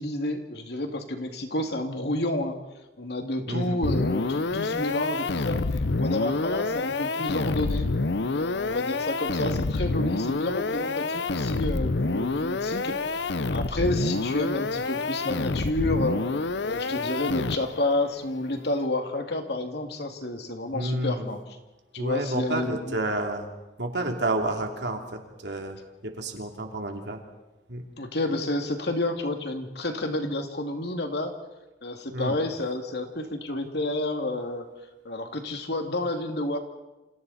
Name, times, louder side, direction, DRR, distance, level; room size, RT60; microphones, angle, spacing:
voice 1, 0.0-2.6 3.0-5.6 6.0-7.9 8.3-13.2 13.5-16.3 16.6-21.4 21.9-23.0 28.0-31.3 31.8-34.7 35.0-36.6, left 1 dB, 70° left, 5 dB, 2.5 m, -30 dB
voice 2, 3.5-3.8 20.7-21.3 22.0-23.5 23.8-27.2 27.7-27.8 32.1-32.4, right 1 dB, 75° right, 3 dB, 3.2 m, -30 dB
sound 1, 3.8-17.9, left 3 dB, 85° left, 0.8 m, -28 dB
29.0 x 26.5 x 4.2 m, 1.0 s
head